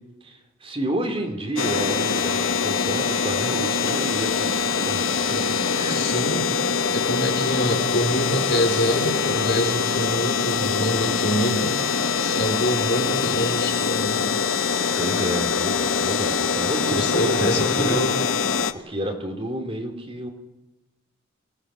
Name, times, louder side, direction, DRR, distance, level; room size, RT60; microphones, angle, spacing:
voice 1, 0.2-6.1 15.0-18.1 18.7-20.3, right 1 dB, 25° right, 3 dB, 2.8 m, -30 dB
sound 1, 1.6-18.7, left 5 dB, 75° left, 1.1 m, -23 dB
voice 2, 5.9-11.7 12.2-14.2 16.9-18.1, left 1 dB, 50° left, 3 dB, 4.0 m, -26 dB
28.0 x 18.0 x 6.3 m, 1.0 s
head